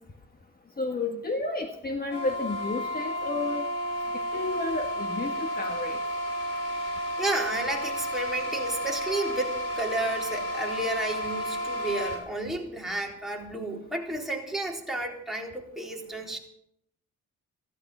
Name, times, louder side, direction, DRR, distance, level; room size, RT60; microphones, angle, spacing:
voice 1, 0.8-3.7 4.3-6.0, left 3 dB, 30° left, 4 dB, 1.6 m, -31 dB
sound 1, 2.1-12.2, equal, 55° left, 5.1 m, -32 dB
voice 2, 6.7-16.4, right 1 dB, ahead, -1 dB, 3.9 m, -32 dB
15.5 x 15.0 x 5.5 m, 0.75 s
cardioid pair, 90°, 30 cm